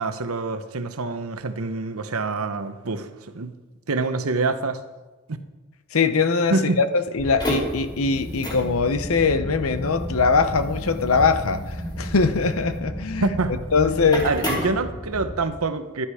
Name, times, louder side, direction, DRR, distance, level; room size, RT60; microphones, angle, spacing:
voice 1, 0.0-3.5 3.9-4.8 5.3-5.4 6.5-6.8 13.2-13.6 14.2-16.1, right 3 dB, 85° right, 1.0 m, -26 dB
voice 2, 5.9-13.3 13.7-14.3, left 4 dB, 80° left, 0.8 m, -22 dB
sound 1, 7.2-15.4, equal, 20° left, 3.0 m, -31 dB
11.5 x 11.5 x 4.9 m
head